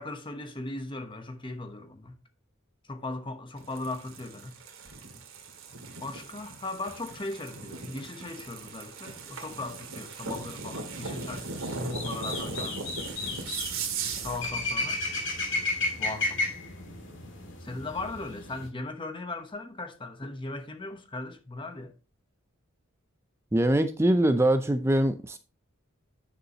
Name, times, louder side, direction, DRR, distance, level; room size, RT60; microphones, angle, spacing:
voice 1, 0.0-2.2 2.9-4.6 6.0-11.5 11.8-12.9 14.2-15.0 16.0-16.4 17.6-21.9, left 2 dB, 25° left, 0.9 m, -38 dB
sound 1, 3.6-14.5, right 4 dB, 80° right, 2.0 m, -38 dB
sound 2, 11.0-18.7, left 2 dB, 55° left, 2.2 m, -34 dB
voice 2, 23.5-25.4, right 1 dB, 10° right, 0.4 m, -23 dB
9.7 x 6.8 x 2.9 m
head